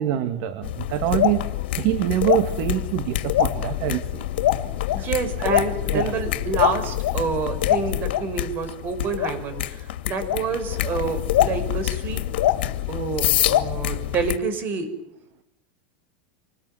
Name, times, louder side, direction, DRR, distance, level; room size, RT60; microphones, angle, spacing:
voice 1, 0.0-1.4 1.8-4.3 5.0-5.1 5.4-5.6 5.9-6.1, right 11 dB, 55° right, 10 dB, 2.2 m, -25 dB
sound 1, 0.6-14.4, left 13 dB, 75° left, 2.3 m, -25 dB
voice 2, 4.9-12.2 12.9-14.9, right 4 dB, 35° right, 9 dB, 5.9 m, -28 dB
26.0 x 20.0 x 9.3 m, 0.80 s
supercardioid pair, 130°, 6 cm